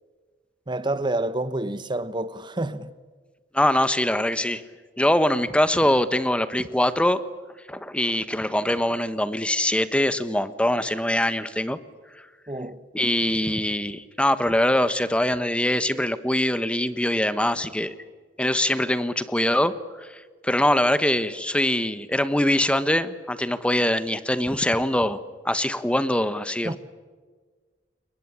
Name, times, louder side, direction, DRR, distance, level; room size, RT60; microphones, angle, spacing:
voice 1, 0.7-2.9 12.5-12.8 26.6-26.8, right 2 dB, 25° right, 1.1 m, -28 dB
voice 2, 3.5-4.6 5.0-7.2 7.7-11.8 12.9-17.9 18.4-20.1 20.4-26.8, left 1 dB, 5° left, 1.2 m, -23 dB
30.0 x 19.0 x 9.9 m
head